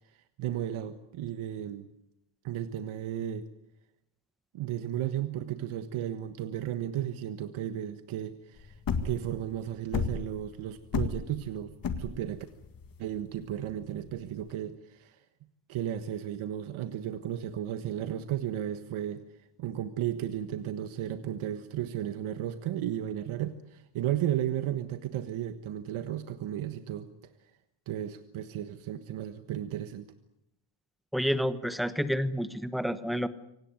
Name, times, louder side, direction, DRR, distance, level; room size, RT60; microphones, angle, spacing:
voice 1, 0.4-1.9 2.4-3.5 4.5-8.8 9.0-12.4 13.0-15.2 15.7-19.2 19.6-27.3 27.9-30.1, right 11 dB, 80° right, 10 dB, 1.5 m, -34 dB
sound 1, 8.6-14.5, left 5 dB, 45° left, 2.0 m, -33 dB
voice 2, 31.1-33.3, equal, ahead, 12 dB, 1.1 m, -29 dB
25.5 x 18.0 x 9.7 m, 0.83 s
cardioid pair, 160°, 48 cm